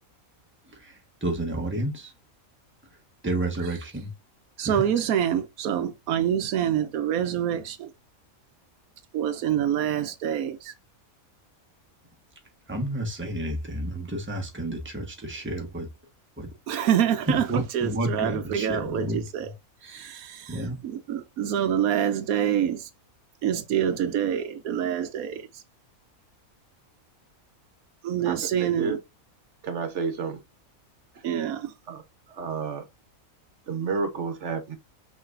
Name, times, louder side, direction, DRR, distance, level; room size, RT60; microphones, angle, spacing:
voice 1, 1.2-2.1 3.2-4.1 4.6-4.8 12.7-15.9 16.4-16.5 17.5-19.2 19.8-20.0 20.5-20.8, right 1 dB, 10° right, 1.0 m, -30 dB
voice 2, 4.6-7.9 9.1-10.7 16.7-19.5 19.8-22.9 23.4-25.6 28.0-29.0 31.2-31.7, right 9 dB, 80° right, 1.1 m, -26 dB
voice 3, 28.6-29.0 29.6-30.4 31.9-32.0 32.3-32.8 33.7-34.8, right 5 dB, 60° right, 1.2 m, -30 dB
5.7 x 3.2 x 2.5 m
omnidirectional pair, 1.5 m